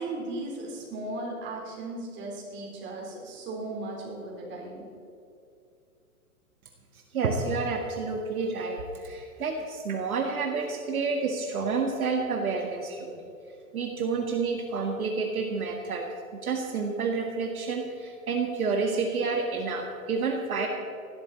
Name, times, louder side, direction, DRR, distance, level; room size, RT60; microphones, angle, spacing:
voice 1, 0.0-4.8, right 2 dB, 25° right, -2 dB, 4.1 m, -36 dB
voice 2, 7.1-13.3 13.7-16.1 16.4-20.7, right 4 dB, 70° right, 2 dB, 1.7 m, -29 dB
17.5 x 12.5 x 4.4 m, 2.5 s
hypercardioid pair, 120°, 45 cm